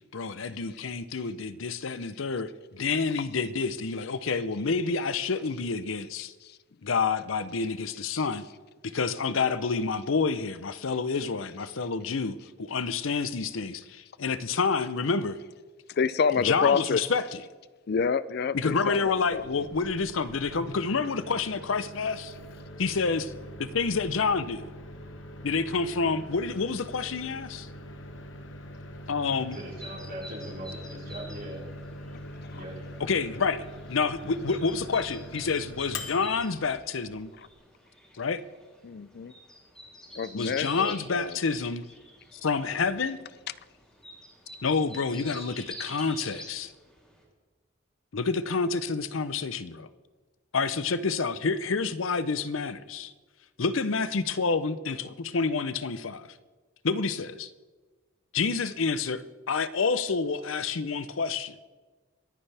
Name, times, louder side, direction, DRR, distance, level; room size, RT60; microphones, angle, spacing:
voice 1, 0.1-6.3 6.8-8.4 8.8-15.4 16.4-17.4 18.5-22.3 22.8-23.3 23.6-24.7 25.4-27.7 29.1-29.6 33.0-33.6 33.9-37.3 38.2-38.4 40.3-41.8 42.3-43.2 44.6-46.7 48.1-49.9 50.5-53.1 53.6-56.3 56.8-57.5 58.3-61.6, left 4 dB, 85° left, 0.7 m, -28 dB
voice 2, 15.9-17.0 17.9-19.7 32.5-32.6 37.4-37.5 38.8-39.3 40.2-41.4 43.5-43.6, left 5 dB, 55° left, 0.4 m, -28 dB
Microwave oven, 18.7-37.5, left 1 dB, 70° left, 1.2 m, -43 dB
sound 1, 29.5-47.2, equal, 5° left, 3.3 m, -49 dB
voice 3, 29.5-31.6 32.5-32.7, right 1 dB, 45° right, 4.9 m, -40 dB
24.0 x 10.0 x 3.4 m
head